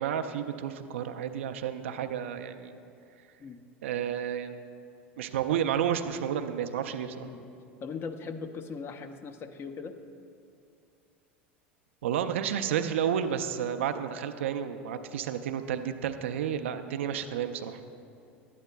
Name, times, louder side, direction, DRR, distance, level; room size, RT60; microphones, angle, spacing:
voice 1, 0.0-2.8 3.8-4.5 5.2-7.3 12.0-17.9, right 9 dB, 75° right, 8 dB, 0.4 m, -31 dB
voice 2, 7.8-10.0, left 5 dB, 35° left, 7 dB, 0.6 m, -39 dB
11.5 x 9.1 x 2.2 m, 2.6 s
hypercardioid pair, 80°, 7 cm